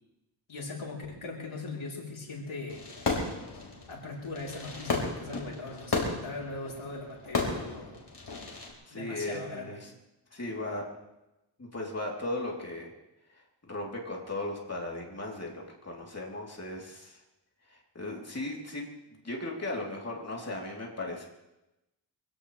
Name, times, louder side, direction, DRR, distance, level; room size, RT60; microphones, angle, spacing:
voice 1, 0.5-2.8 3.9-8.0 8.9-9.8, left 3 dB, 80° left, -2 dB, 3.7 m, -40 dB
Fireworks, 2.7-8.7, left 3 dB, 60° left, 4.6 m, -34 dB
voice 2, 8.9-9.9 10.3-10.8 11.6-12.9 13.7-17.2 17.7-18.8 19.1-21.3, left 2 dB, 30° left, -2 dB, 3.4 m, -37 dB
24.5 x 16.5 x 3.3 m, 0.94 s
wide cardioid pair, 75°, 47 cm